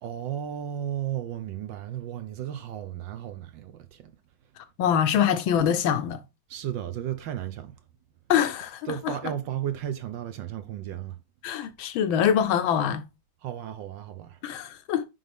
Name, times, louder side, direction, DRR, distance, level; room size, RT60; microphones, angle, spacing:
voice 1, 0.0-4.0 6.5-7.7 8.9-11.2 13.4-14.4, right 10 dB, 70° right, 1.2 m, -34 dB
voice 2, 4.8-6.2 8.3-9.2 11.4-13.0 14.4-15.0, left 9 dB, 75° left, 1.4 m, -24 dB
9.3 x 3.5 x 3.4 m
omnidirectional pair, 2.3 m